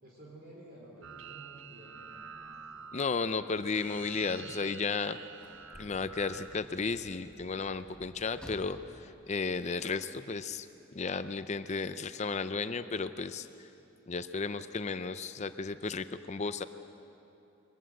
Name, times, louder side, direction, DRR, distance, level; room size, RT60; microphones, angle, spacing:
voice 1, 0.0-2.3, right 1 dB, 45° right, -3 dB, 4.0 m, -52 dB
sound 1, 1.0-6.6, right 6 dB, 65° right, 1.1 m, -48 dB
voice 2, 2.9-5.2 5.8-8.8 9.3-10.7 10.9-13.5 14.1-16.6, left 4 dB, 30° left, 11 dB, 0.5 m, -34 dB
Sliding door / Slam, 5.3-10.4 11.3-11.4, equal, 5° left, 1.1 m, -54 dB
23.0 x 20.5 x 7.8 m, 2.9 s
head